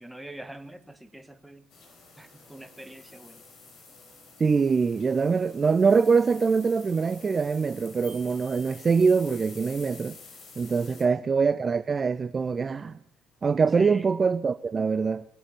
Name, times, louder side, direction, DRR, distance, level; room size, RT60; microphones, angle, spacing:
voice 1, 0.0-1.6 2.2-3.4 10.9-11.3 13.7-14.1, right 1 dB, 5° right, 1.6 m, -44 dB
sound 1, 1.7-11.0, left 4 dB, 55° left, 4.4 m, -49 dB
voice 2, 4.4-10.2 10.6-13.0 13.4-15.2, right 5 dB, 35° right, 0.5 m, -24 dB
sound 2, 8.0-9.6, left 1 dB, 85° left, 5.0 m, -53 dB
20.5 x 8.7 x 6.7 m
hypercardioid pair, 55°, 0 cm